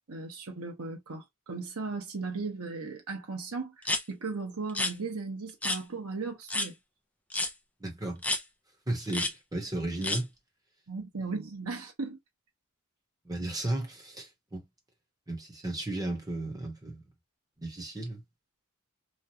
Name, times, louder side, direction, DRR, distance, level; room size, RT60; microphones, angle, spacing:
voice 1, 0.1-6.7 10.9-12.2, right 4 dB, 85° right, 1.0 m, -37 dB
sound 1, 3.8-4.0 4.7-4.9 5.6-5.8 6.5-6.7 7.3-7.5 8.2-8.4 9.1-9.3 10.0-10.2, left 2 dB, 5° left, 0.5 m, -29 dB
voice 2, 7.8-8.2 8.9-10.3 11.2-11.3 13.2-14.6 15.3-17.0 17.6-18.2, right 2 dB, 15° right, 1.1 m, -34 dB
3.1 x 2.4 x 2.6 m
head